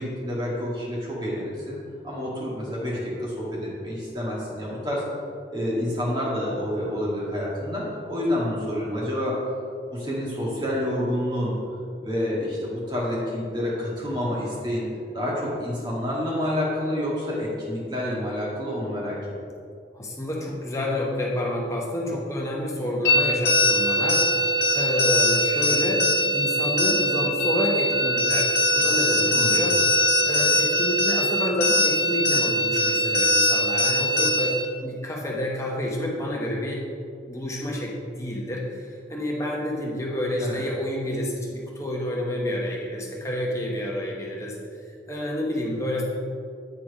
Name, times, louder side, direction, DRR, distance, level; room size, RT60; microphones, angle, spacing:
voice 1, 0.0-1.8 2.0-5.0 5.5-9.4 9.9-11.5 12.0-14.8 15.1-19.2 29.2-29.7 40.4-40.6, left 1 dB, 25° right, -6 dB, 2.0 m, -28 dB
voice 2, 19.9-24.3 24.7-29.8 30.2-34.6 34.8-36.8 37.3-44.6 44.9-46.0, left 1 dB, 15° left, -2 dB, 0.9 m, -29 dB
sound 1, 23.0-34.6, left 1 dB, 70° left, 1.1 m, -22 dB
8.9 x 4.5 x 4.9 m, 2.4 s
head